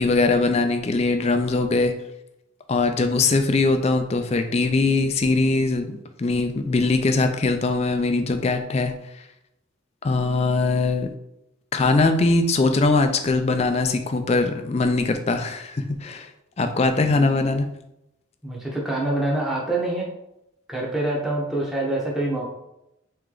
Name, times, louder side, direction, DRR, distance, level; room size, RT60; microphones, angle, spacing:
voice 1, 0.0-1.9 2.7-8.9 10.0-11.1 11.7-16.3 16.6-17.7, left 3 dB, 30° left, 7 dB, 0.4 m, -21 dB
voice 2, 18.4-20.1 20.7-22.5, right 2 dB, ahead, -4 dB, 0.9 m, -25 dB
3.4 x 3.2 x 3.7 m, 0.84 s
head